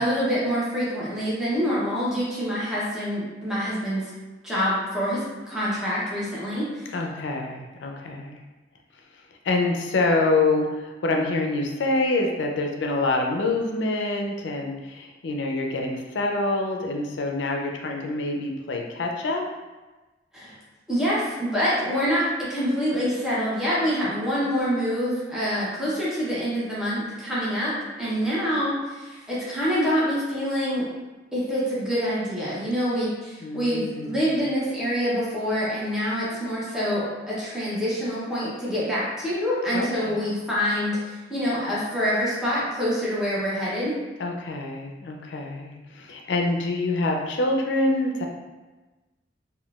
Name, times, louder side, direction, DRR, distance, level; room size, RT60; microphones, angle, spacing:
voice 1, 0.0-4.1 4.4-6.9 20.3-20.5 20.9-30.9 31.3-43.9, equal, 5° right, -9 dB, 0.7 m, -26 dB
voice 2, 6.9-8.4 9.4-19.4 33.4-34.4 39.7-40.3 44.2-48.3, left 2 dB, 75° left, 1 dB, 0.4 m, -26 dB
3.6 x 2.2 x 2.3 m, 1.2 s
head